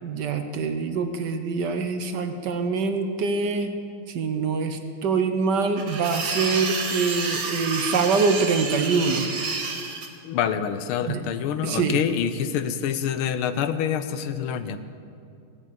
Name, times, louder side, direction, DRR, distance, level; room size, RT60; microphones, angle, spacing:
voice 1, 0.0-3.7 4.1-9.3 11.1-11.2 11.6-12.0, right 4 dB, 65° right, 7 dB, 1.2 m, -24 dB
sound 1, 5.8-10.1, right 4 dB, 50° right, 1.5 m, -29 dB
voice 2, 10.2-14.8, left 8 dB, 85° left, 11 dB, 1.6 m, -26 dB
16.5 x 7.3 x 8.5 m, 2.5 s
omnidirectional pair, 2.3 m